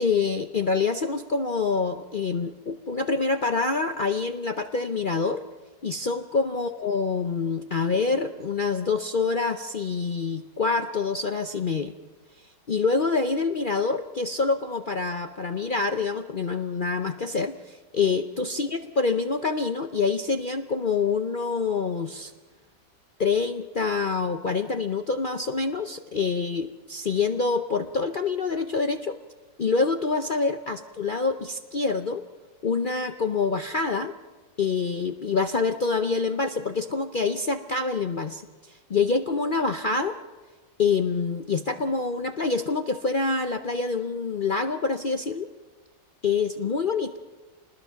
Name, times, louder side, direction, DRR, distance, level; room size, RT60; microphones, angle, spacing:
voice 1, 0.0-5.4 5.8-11.9 12.7-22.3 23.2-29.2 29.6-32.2 32.6-34.1 34.6-38.4 38.9-40.2 40.8-45.5 46.2-47.1, left 4 dB, 55° left, 7 dB, 0.5 m, -26 dB
26.5 x 20.5 x 5.8 m, 1.3 s
omnidirectional pair, 1.9 m